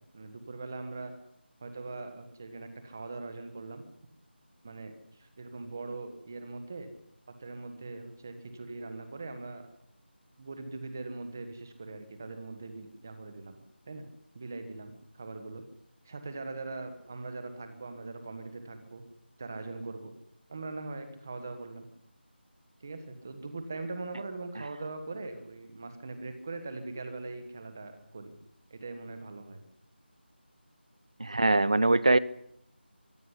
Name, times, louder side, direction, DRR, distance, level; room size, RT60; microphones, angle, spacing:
voice 1, 0.1-1.1 1.6-3.8 4.6-6.9 7.3-9.7 10.4-13.6 13.9-14.1 14.3-15.6 16.0-19.0 19.4-20.1 20.5-21.9 22.8-28.3 28.7-29.6, right 3 dB, 15° right, 9 dB, 1.4 m, -41 dB
voice 2, 31.2-32.2, right 2 dB, 35° right, 19 dB, 0.8 m, -22 dB
24.0 x 14.0 x 9.9 m, 0.75 s
figure-of-eight pair, 180°, 6 cm